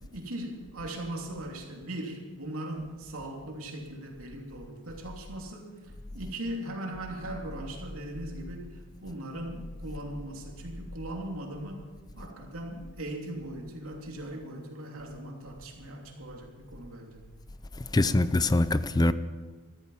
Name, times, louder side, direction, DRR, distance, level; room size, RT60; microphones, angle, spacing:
voice 1, 0.0-5.7 6.1-11.8 12.2-17.2, right 1 dB, 80° right, 3.0 m, -39 dB
voice 2, 17.9-19.1, left 2 dB, 20° left, 0.5 m, -23 dB
14.5 x 13.5 x 5.6 m
head